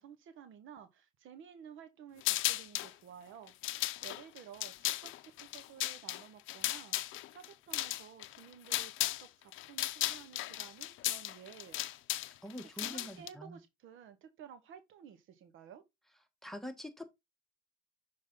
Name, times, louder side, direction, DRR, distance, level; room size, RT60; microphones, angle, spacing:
voice 1, 0.0-11.8 12.7-15.8, right 8 dB, 85° right, 1.1 m, -54 dB
sound 1, 2.2-2.9 3.5-9.3 9.5-13.3, left 15 dB, 85° left, 0.5 m, -36 dB
voice 2, 12.4-13.6 16.4-17.1, equal, ahead, 1.3 m, -44 dB
6.6 x 3.8 x 3.8 m
cardioid pair, 90°, 20 cm